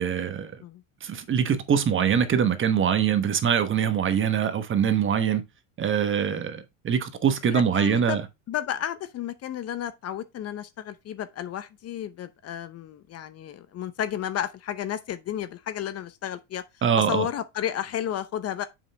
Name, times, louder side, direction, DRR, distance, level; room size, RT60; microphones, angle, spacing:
voice 1, 0.0-0.5 1.0-5.4 5.8-8.2 16.8-17.3, right 8 dB, 30° right, 1.2 m, -23 dB
voice 2, 7.4-8.2 8.5-16.6 17.0-18.6, left 10 dB, 40° left, 0.8 m, -32 dB
7.2 x 5.6 x 3.4 m
supercardioid pair, 105°, 40 cm